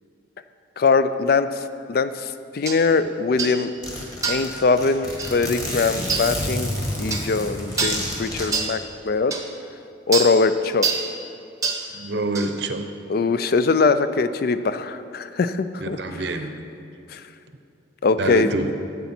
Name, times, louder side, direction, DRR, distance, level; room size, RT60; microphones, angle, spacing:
voice 1, 0.8-1.6 1.9-3.7 4.3-6.7 7.0-9.3 10.1-10.9 13.1-16.0 17.1-17.2 18.0-18.5, left 4 dB, 50° left, 12 dB, 0.4 m, -21 dB
sound 1, 2.7-2.8 3.4-3.6 4.2-4.5 5.2-5.4 6.1-6.3 7.1-7.3 7.8-8.0 8.5-8.7 9.3-9.4 10.1-10.3 10.8-11.1 11.6-11.8 12.3-12.5, right 5 dB, 15° right, 0.8 m, -25 dB
Zipper (clothing), 3.0-3.1 3.4-3.5 3.8-8.5, left 1 dB, 20° left, 1.5 m, -30 dB
voice 2, 11.9-12.8 15.8-16.5 18.2-18.7, right 2 dB, 60° right, 6 dB, 0.7 m, -26 dB
12.0 x 8.1 x 4.3 m, 2.6 s
head